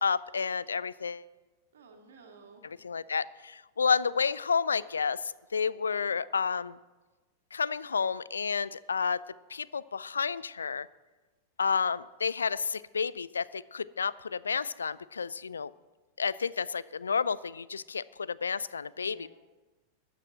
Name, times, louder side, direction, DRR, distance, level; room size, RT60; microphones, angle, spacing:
voice 1, 0.0-1.2 2.8-5.2 5.5-6.8 7.5-9.2 9.5-10.9 11.6-15.7 16.2-19.3, left 5 dB, 75° left, 19 dB, 0.3 m, -30 dB
voice 2, 1.7-2.8 18.9-19.3, right 4 dB, 65° right, 2 dB, 1.9 m, -54 dB
14.0 x 6.1 x 7.7 m, 1.2 s
figure-of-eight pair, 90°, 0 cm